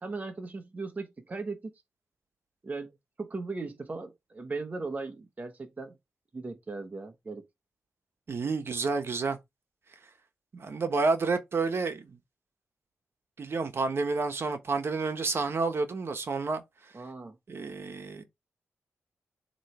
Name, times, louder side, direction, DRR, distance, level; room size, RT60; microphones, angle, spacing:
voice 1, 0.0-1.7 2.6-6.0 6.3-7.5 16.9-17.4, right 3 dB, 30° right, 1.0 m, -38 dB
voice 2, 8.3-9.4 10.5-12.2 13.4-16.6 17.5-18.2, right 4 dB, 50° right, 1.2 m, -30 dB
7.3 x 3.1 x 4.8 m
wide cardioid pair, 135°, 5 cm